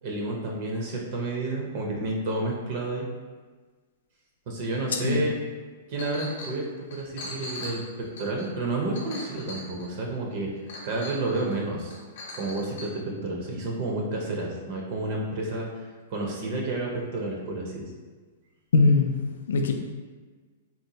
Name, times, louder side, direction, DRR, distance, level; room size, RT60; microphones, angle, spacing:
voice 1, 0.0-3.1 4.5-5.4 5.9-6.6 6.9-10.5 10.8-12.0 12.4-15.7 16.1-17.9, right 2 dB, 40° right, -1 dB, 0.5 m, -30 dB
Chink clink, 6.0-6.6 6.9-10.0 10.7-11.6 11.9-12.9, left 1 dB, 60° left, 0.7 m, -40 dB
voice 2, 18.7-19.7, left 4 dB, 85° left, 4 dB, 0.4 m, -22 dB
3.8 x 2.2 x 2.8 m, 1.4 s
hypercardioid pair, 165°, 0 cm